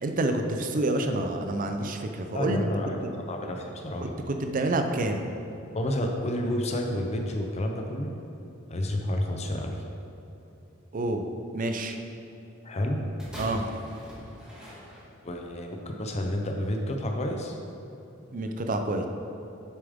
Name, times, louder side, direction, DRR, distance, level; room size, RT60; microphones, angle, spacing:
voice 1, 0.0-2.7 4.0-5.2 10.9-11.2 11.5-12.0 13.4-13.6 18.3-19.1, right 2 dB, 40° right, 5 dB, 0.5 m, -28 dB
voice 2, 2.3-4.1 5.7-8.1 8.7-9.8 12.6-13.0 15.2-17.6, left 1 dB, 30° left, 2 dB, 0.6 m, -30 dB
sound 1, 13.2-15.4 16.2-16.3, equal, 5° right, 1.4 m, -42 dB
7.1 x 6.8 x 3.6 m, 2.9 s
head